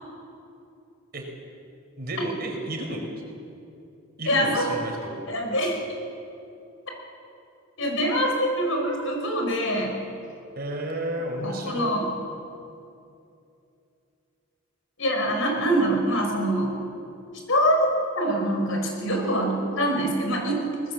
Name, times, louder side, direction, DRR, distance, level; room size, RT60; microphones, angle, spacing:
voice 1, 2.0-3.1 4.2-5.2 10.6-11.9, right 1 dB, 45° right, 2 dB, 4.5 m, -32 dB
voice 2, 4.3-4.7 5.3-5.8 7.8-9.9 11.4-12.1 15.0-16.7 17.5-17.8 18.2-20.6, equal, 65° left, 2 dB, 5.5 m, -24 dB
23.0 x 20.0 x 7.7 m, 2.6 s
head